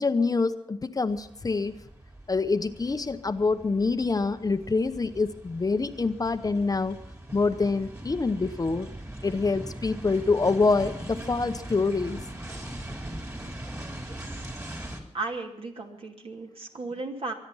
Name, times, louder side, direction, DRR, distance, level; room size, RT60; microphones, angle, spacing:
voice 1, 0.0-1.7 2.3-7.0 7.3-8.9 9.2-12.2, left 3 dB, 35° left, 10 dB, 0.8 m, -26 dB
sound 1, 1.1-15.0, right 1 dB, 25° right, 3.3 m, -41 dB
voice 2, 13.9-14.4 15.1-17.3, right 3 dB, 55° right, 2 dB, 2.7 m, -36 dB
24.5 x 10.5 x 5.5 m, 0.77 s
wide cardioid pair, 95°, 11 cm